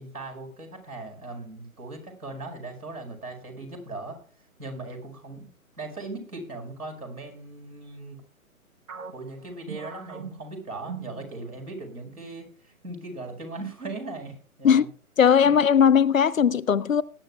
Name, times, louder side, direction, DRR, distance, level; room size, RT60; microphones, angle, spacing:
voice 1, 0.0-4.2 4.6-5.5 5.8-8.2 9.1-14.9 15.4-15.5, right 2 dB, 85° right, 5.2 m, -39 dB
sound 1, 8.9-11.7 12.0-12.3 12.9-13.4, right 6 dB, 65° right, 1.2 m, -41 dB
voice 2, 15.2-17.0, left 7 dB, 65° left, 0.6 m, -18 dB
20.5 x 10.5 x 2.3 m
figure-of-eight pair, 135°, 44 cm